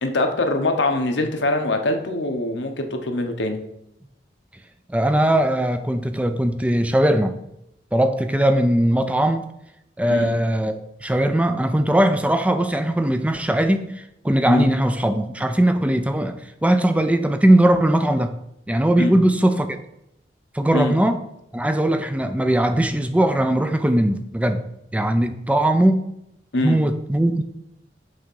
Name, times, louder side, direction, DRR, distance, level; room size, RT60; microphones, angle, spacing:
voice 1, 0.0-3.6 10.1-10.3 14.5-14.7 19.0-19.2 20.7-21.0 26.5-26.8, left 2 dB, 80° left, 5 dB, 0.9 m, -23 dB
voice 2, 4.9-7.4 7.9-9.5 10.0-18.3 18.7-19.8 20.5-21.2 21.5-24.6 24.9-26.1 26.6-27.4, right 1 dB, 5° right, 8 dB, 0.4 m, -20 dB
6.4 x 3.5 x 5.4 m, 0.81 s
head